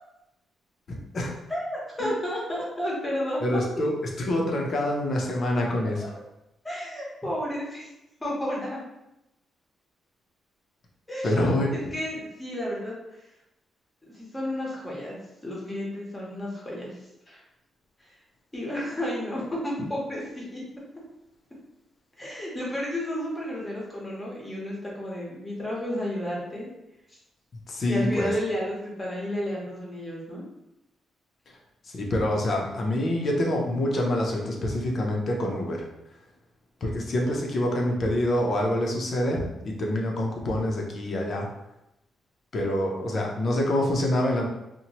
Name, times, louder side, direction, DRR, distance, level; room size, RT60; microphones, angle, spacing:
voice 1, 0.9-1.4 3.4-6.1 11.2-11.7 27.7-28.3 31.9-35.8 36.8-41.5 42.5-44.4, left 1 dB, 40° left, 0 dB, 0.5 m, -26 dB
voice 2, 1.5-3.8 5.8-5.9 6.6-7.9 8.2-8.8 11.1-13.2 14.1-16.9 17.3-17.4 18.0-18.2 18.5-20.6 22.2-26.7 27.8-30.4, equal, 10° left, -4 dB, 0.8 m, -32 dB
2.8 x 2.1 x 2.8 m, 0.89 s
wide cardioid pair, 155°, 0 cm